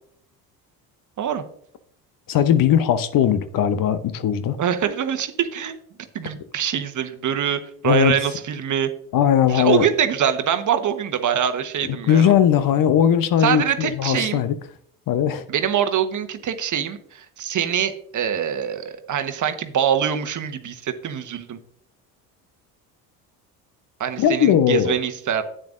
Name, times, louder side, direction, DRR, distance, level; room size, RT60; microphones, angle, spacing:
voice 1, 2.3-4.6 7.8-8.1 9.1-9.9 11.8-14.6 15.1-15.4 24.2-25.0, left 9 dB, 45° left, 0.8 m, -19 dB
voice 2, 4.6-5.8 6.1-8.9 9.5-12.3 13.4-14.4 15.5-21.6 24.0-25.4, right 9 dB, 40° right, 1.2 m, -24 dB
10.5 x 8.9 x 2.6 m
hypercardioid pair, 60°, 47 cm